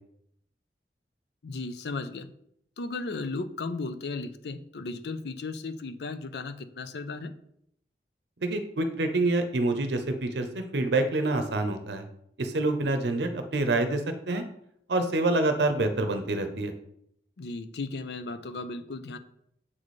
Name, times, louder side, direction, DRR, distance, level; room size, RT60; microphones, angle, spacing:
voice 1, 1.4-2.3 2.8-7.3 17.4-19.2, left 3 dB, 70° left, 10 dB, 0.5 m, -35 dB
voice 2, 8.4-12.0 12.4-14.0 14.3-14.4 14.9-16.7, right 2 dB, 75° right, 7 dB, 0.7 m, -26 dB
7.4 x 4.1 x 3.2 m, 0.72 s
head